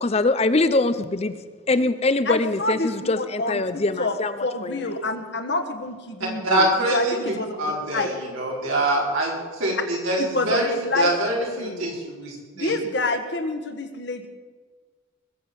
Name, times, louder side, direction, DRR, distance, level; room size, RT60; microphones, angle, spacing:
voice 1, 0.0-1.4 1.7-4.3 4.6-4.8, left 2 dB, 30° left, 12 dB, 0.5 m, -23 dB
voice 2, 2.2-8.1 10.3-11.1 11.6-11.9 12.6-14.3, left 2 dB, 55° left, 7 dB, 1.4 m, -28 dB
voice 3, 6.2-12.7, right 1 dB, 85° right, -3 dB, 4.5 m, -25 dB
20.5 x 7.7 x 6.9 m, 1.5 s
head